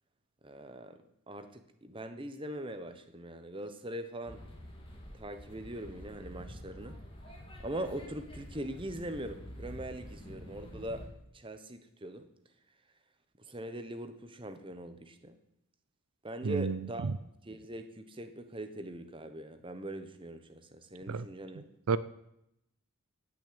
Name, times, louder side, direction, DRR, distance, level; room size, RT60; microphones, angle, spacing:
voice 1, 0.4-4.4 5.1-7.0 7.6-11.1 11.3-12.3 13.4-15.4 16.2-21.6, right 1 dB, 25° right, 9 dB, 1.1 m, -42 dB
sound 1, 4.2-11.1, equal, 25° left, 2.8 m, -48 dB
voice 2, 16.4-16.8 21.1-21.3 21.9-22.0, right 5 dB, 80° right, 15 dB, 0.5 m, -30 dB
17.0 x 6.3 x 8.7 m, 0.80 s
head